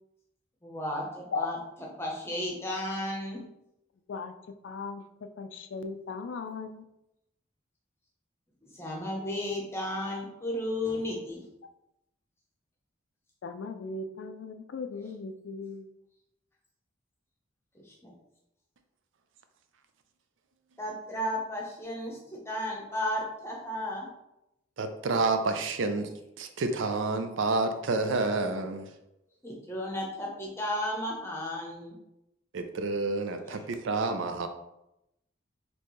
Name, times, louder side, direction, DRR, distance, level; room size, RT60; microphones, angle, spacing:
voice 1, 0.6-3.4 8.6-11.4 17.9-18.1 20.8-24.1 29.4-32.0 33.4-33.6, left 1 dB, 15° left, -2 dB, 0.8 m, -34 dB
voice 2, 4.6-5.0 5.4-6.8 13.4-15.8, left 4 dB, 70° left, 8 dB, 0.4 m, -37 dB
voice 3, 24.8-26.1 26.4-28.9 32.5-34.5, right 3 dB, 75° right, 7 dB, 0.5 m, -29 dB
4.3 x 3.1 x 3.1 m, 0.86 s
head